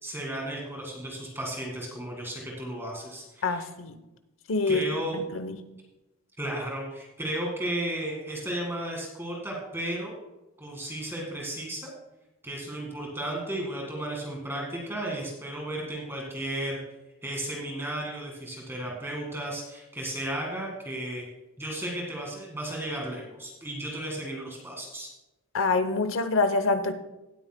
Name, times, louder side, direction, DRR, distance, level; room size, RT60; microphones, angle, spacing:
voice 1, 0.0-3.6 4.7-5.2 6.4-10.1 10.6-11.9 12.4-16.8 17.2-21.3 21.6-25.1, right 1 dB, 10° right, -1 dB, 1.9 m, -34 dB
voice 2, 3.4-4.0 4.5-4.8 5.1-5.6 25.5-26.9, left 3 dB, 65° left, 10 dB, 0.8 m, -26 dB
17.5 x 8.7 x 2.2 m, 0.99 s
head